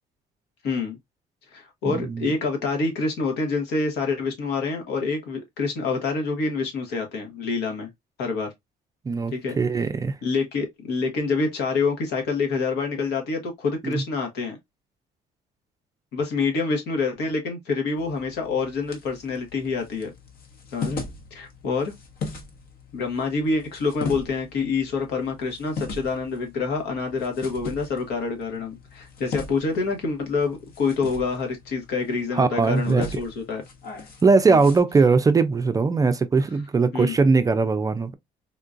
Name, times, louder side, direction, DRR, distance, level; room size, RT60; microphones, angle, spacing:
voice 1, 0.6-1.0 1.5-7.9 8.2-8.5 9.3-9.6 10.2-14.6 16.1-20.1 20.7-21.1 21.3-21.9 22.9-33.6 34.5-34.6 36.9-37.1, left 4 dB, 85° left, 1.2 m, -27 dB
voice 2, 1.9-2.3 9.1-10.2 13.8-14.0 32.3-33.0 34.2-38.1, right 4 dB, 20° right, 0.3 m, -20 dB
sound 1, 18.0-34.8, left 3 dB, 60° left, 1.1 m, -39 dB
3.7 x 2.4 x 2.5 m
cardioid pair, 110°, 17 cm